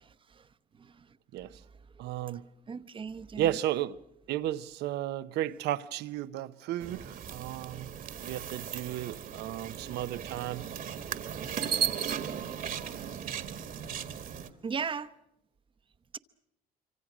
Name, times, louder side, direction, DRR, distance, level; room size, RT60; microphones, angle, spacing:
voice 1, 2.0-2.5 3.4-4.0 4.3-10.7, right 13 dB, 80° right, 0.8 m, -34 dB
voice 2, 2.7-3.5 14.6-15.1, right 6 dB, 30° right, 0.9 m, -37 dB
sound 1, 6.8-14.5, right 8 dB, 55° right, 1.7 m, -36 dB
26.0 x 25.0 x 6.2 m
cardioid pair, 110°, 17 cm